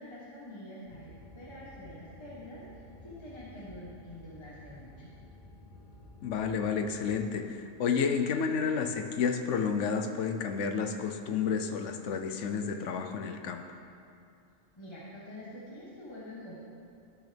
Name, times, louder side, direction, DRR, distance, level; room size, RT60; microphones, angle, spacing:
voice 1, 0.0-5.1 14.8-16.5, left 1 dB, 25° left, -8 dB, 1.3 m, -46 dB
sound 1, 0.8-7.3, left 1 dB, 45° left, 1.1 m, -52 dB
voice 2, 6.2-13.6, left 6 dB, 75° left, 6 dB, 1.0 m, -31 dB
13.0 x 6.2 x 3.4 m, 2.5 s
omnidirectional pair, 1.3 m